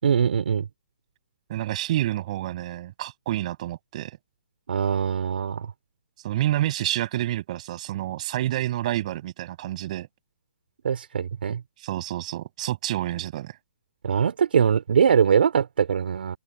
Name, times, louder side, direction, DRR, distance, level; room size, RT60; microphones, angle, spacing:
voice 1, 0.0-0.7 4.7-5.7 10.8-11.6 14.0-16.4, right 7 dB, 70° right, 4.5 m, -22 dB
voice 2, 1.5-4.2 6.2-10.1 11.8-13.5, right 14 dB, 40° right, 7.5 m, -28 dB
hypercardioid pair, 155°, 6 cm